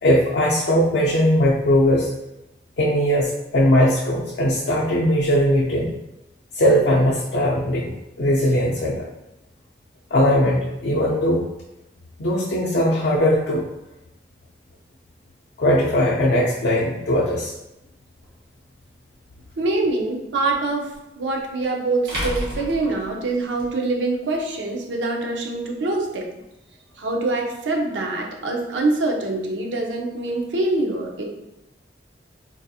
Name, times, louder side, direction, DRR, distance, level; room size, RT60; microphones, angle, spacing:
voice 1, 0.0-2.1 2.8-5.9 6.5-9.0 10.1-11.4 12.2-13.6 15.6-17.5, equal, 65° left, -4 dB, 0.5 m, -19 dB
sound 1, 18.2-18.3 20.9-21.0 22.1-23.7, equal, 55° right, 1.0 m, -30 dB
voice 2, 19.6-20.9 21.2-26.3 27.0-31.3, right 2 dB, 85° right, 1 dB, 0.6 m, -24 dB
3.9 x 2.7 x 2.3 m, 0.90 s
head